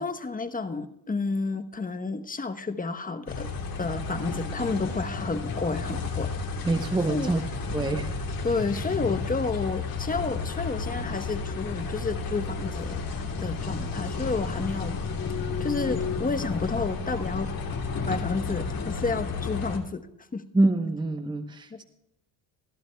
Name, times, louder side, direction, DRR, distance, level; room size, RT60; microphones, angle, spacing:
voice 1, 0.0-3.5 3.8-6.3 7.1-7.3 8.4-13.0 13.4-15.0 15.6-17.5 18.1-20.1 20.3-20.4 21.7-21.8, left 3 dB, 15° left, 8 dB, 1.0 m, -30 dB
sound 1, 3.3-19.8, left 4 dB, 45° left, 2.5 m, -32 dB
voice 2, 6.6-7.4 7.7-8.2 20.5-21.8, right 2 dB, 10° right, 7 dB, 0.9 m, -25 dB
21.0 x 12.0 x 2.3 m, 0.85 s
supercardioid pair, 80°, 49 cm